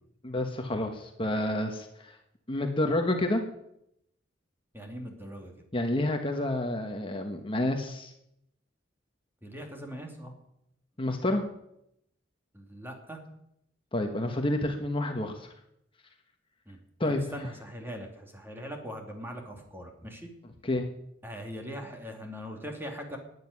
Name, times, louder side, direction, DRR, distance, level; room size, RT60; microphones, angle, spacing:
voice 1, 0.2-2.2 2.5-3.4 5.7-8.1 11.0-11.5 13.9-15.5 17.0-17.2 20.6-20.9, left 1 dB, 30° left, 4 dB, 1.3 m, -29 dB
voice 2, 4.7-5.5 9.4-10.3 12.5-13.2 16.7-16.8 17.0-20.3 21.2-23.2, equal, 10° right, 2 dB, 2.6 m, -41 dB
12.0 x 9.8 x 9.7 m, 0.79 s
head